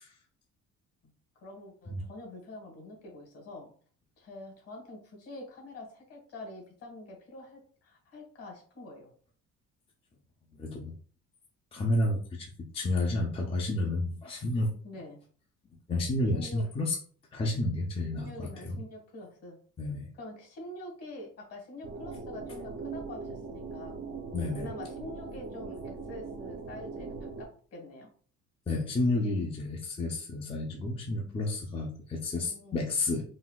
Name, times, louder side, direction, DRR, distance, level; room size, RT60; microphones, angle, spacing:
voice 1, 1.3-3.7 4.2-9.1 14.8-15.2 16.3-16.7 18.1-19.6 20.1-24.0 24.6-28.1 32.4-32.9, left 1 dB, 50° left, 0 dB, 1.4 m, -45 dB
voice 2, 10.6-11.0 11.7-12.5 12.7-14.7 15.9-17.0 17.3-18.8 19.8-20.1 24.3-24.7 28.7-33.2, left 2 dB, 20° left, 0 dB, 0.4 m, -30 dB
sound 1, 21.8-27.5, right 4 dB, 45° right, 0.6 m, -40 dB
3.9 x 2.2 x 2.2 m, 0.43 s
cardioid pair, 125°, 30 cm